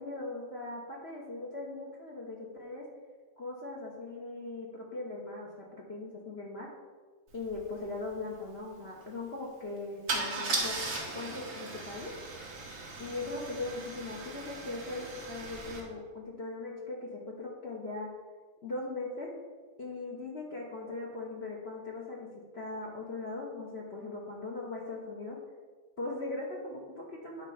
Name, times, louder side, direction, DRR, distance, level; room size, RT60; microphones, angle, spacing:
voice 1, 0.0-2.8 3.4-6.7 7.3-10.8 11.1-12.1 13.0-18.1 18.6-19.3 19.8-22.3 22.5-25.4 26.0-27.5, left 2 dB, 40° left, -2 dB, 0.9 m, -39 dB
Car / Engine starting / Idling, 7.5-7.6 7.8-8.1 10.1-15.8, right 3 dB, 45° right, 1.8 m, -37 dB
9.7 x 4.0 x 5.6 m, 1.4 s
omnidirectional pair, 2.3 m